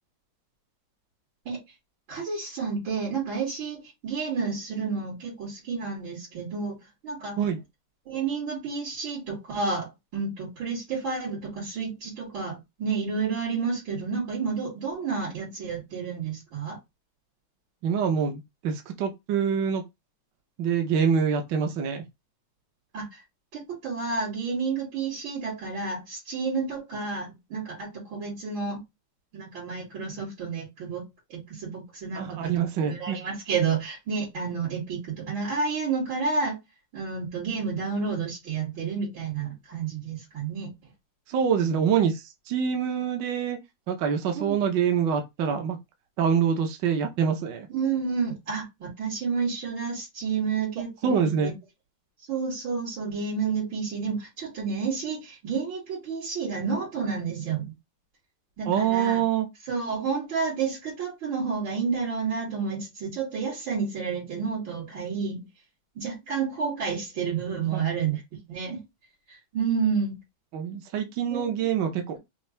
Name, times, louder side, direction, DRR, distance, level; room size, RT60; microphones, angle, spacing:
voice 1, 2.1-6.8 7.0-7.4 8.1-16.8 22.9-23.0 23.5-28.8 29.3-31.0 31.3-32.5 32.9-36.6 36.9-40.7 44.3-44.6 47.7-51.5 52.3-57.7 58.6-59.2 59.7-65.4 65.9-68.2 68.5-68.8 69.5-70.1 71.3-71.6, right 5 dB, 90° right, 3.3 m, -30 dB
voice 2, 17.8-19.8 20.6-22.0 32.1-33.2 41.3-43.6 43.9-45.8 46.2-47.7 51.0-51.5 58.6-59.5 67.7-67.8 70.5-72.2, right 7 dB, 70° right, 1.4 m, -25 dB
5.6 x 2.6 x 3.3 m
omnidirectional pair, 2.1 m